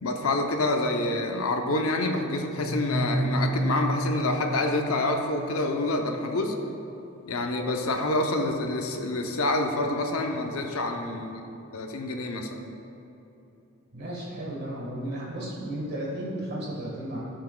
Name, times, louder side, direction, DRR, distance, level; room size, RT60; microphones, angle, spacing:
voice 1, 0.0-6.6 7.3-11.4 11.7-12.6, left 2 dB, 75° left, 3 dB, 0.7 m, -27 dB
sound 1, 2.6-5.4, right 1 dB, 25° left, 0.8 m, -29 dB
voice 2, 13.9-17.2, right 1 dB, 45° right, -5 dB, 1.5 m, -34 dB
14.5 x 5.9 x 2.3 m, 3.0 s
head